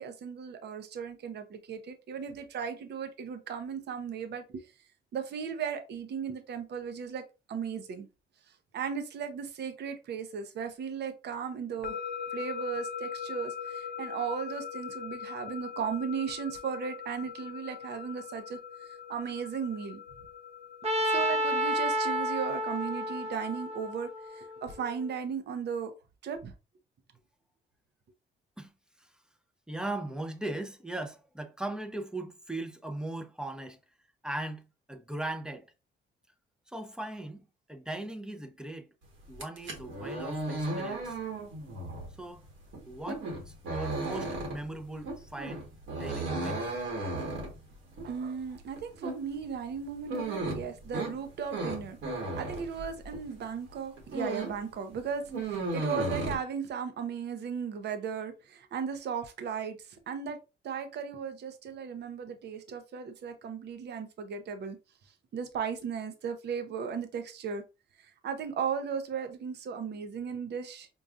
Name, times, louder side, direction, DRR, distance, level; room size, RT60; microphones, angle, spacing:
voice 1, 0.0-4.7 5.1-7.2 7.5-8.1 8.7-12.0 12.3-20.0 21.1-25.9 26.2-26.5 48.0-52.0 52.4-60.4 60.6-64.8 65.3-67.6 68.0-70.9, right 6 dB, 60° right, 0.7 m, -36 dB
sound 1, 11.8-24.8, left 7 dB, 55° left, 0.6 m, -42 dB
Trumpet, 20.8-24.9, equal, 30° right, 1.0 m, -30 dB
voice 2, 29.7-33.8 34.2-35.7 36.7-37.4 37.7-38.9 39.3-41.1 42.2-42.4 42.9-45.6 45.9-46.6, right 2 dB, 5° right, 0.6 m, -38 dB
sound 2, 39.3-53.3 53.7-54.7 54.9-56.3, right 2 dB, 75° right, 1.3 m, -35 dB
5.4 x 2.3 x 2.5 m
cardioid pair, 90°, 20 cm